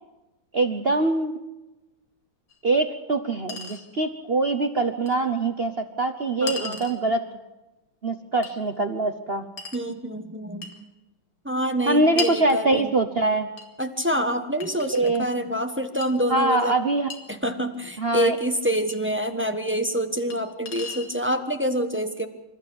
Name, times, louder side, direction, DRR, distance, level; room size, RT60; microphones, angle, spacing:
voice 1, 0.5-1.4 2.6-7.2 8.0-9.5 11.9-13.5 14.9-15.2 16.3-17.1 18.0-18.4, right 2 dB, 50° right, 7 dB, 0.7 m, -23 dB
Chink clink, 2.5-2.6 3.5-3.8 5.1-5.2 6.5-7.0 8.4-8.6 9.6-9.9 10.6-10.8 12.2-12.4 13.6-13.7 14.6-15.3 16.0-16.1 17.1-17.2 18.9-19.0 20.3-20.4 20.7-21.1, left 4 dB, 65° left, 3.0 m, -35 dB
voice 2, 6.4-6.8 9.7-10.7 11.4-12.9 13.8-16.8 17.3-22.3, equal, 10° right, 6 dB, 0.8 m, -26 dB
27.0 x 13.5 x 8.7 m, 1.0 s
omnidirectional pair, 2.3 m